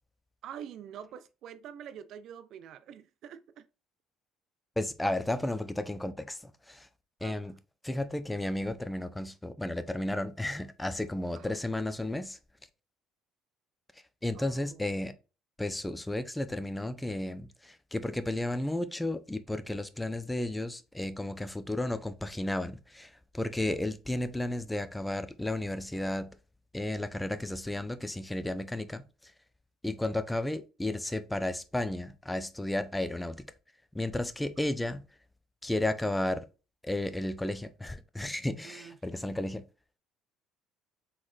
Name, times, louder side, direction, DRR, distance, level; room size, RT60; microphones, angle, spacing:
voice 1, 0.4-3.7 7.2-7.5 11.4-11.5 14.3-14.9 38.6-39.0, right 9 dB, 65° right, 0.4 m, -46 dB
voice 2, 4.8-6.9 7.2-7.5 7.8-12.4 14.2-15.1 15.6-26.3 26.7-29.0 29.8-33.4 33.9-35.0 35.6-36.5 36.8-39.6, left 1 dB, 10° left, 0.6 m, -33 dB
4.1 x 3.8 x 3.2 m
supercardioid pair, 90°, 0 cm